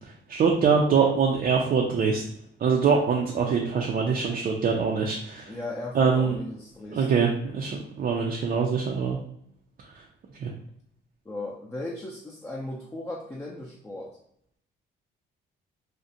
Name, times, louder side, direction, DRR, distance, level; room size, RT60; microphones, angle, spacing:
voice 1, 0.3-2.2 2.6-5.5 5.9-6.3 6.9-9.2 10.4-10.5, right 5 dB, 45° right, -1 dB, 0.4 m, -23 dB
voice 2, 5.5-7.2 11.2-14.2, left 2 dB, 15° left, -3 dB, 0.5 m, -37 dB
2.5 x 2.1 x 2.7 m, 0.68 s
cardioid pair, 90°, 20 cm